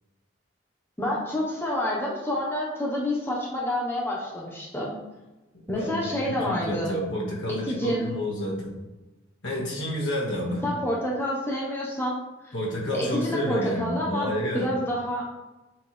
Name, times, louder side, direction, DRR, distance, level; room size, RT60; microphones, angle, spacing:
voice 1, 1.0-4.9 5.7-7.0 7.5-8.1 10.6-12.2 12.4-12.5 12.9-15.3, left 1 dB, 10° left, -4 dB, 1.1 m, -28 dB
voice 2, 5.5-8.7 9.4-10.8 12.5-14.7, equal, 80° left, -5 dB, 2.2 m, -30 dB
6.7 x 4.6 x 3.5 m, 1.1 s
head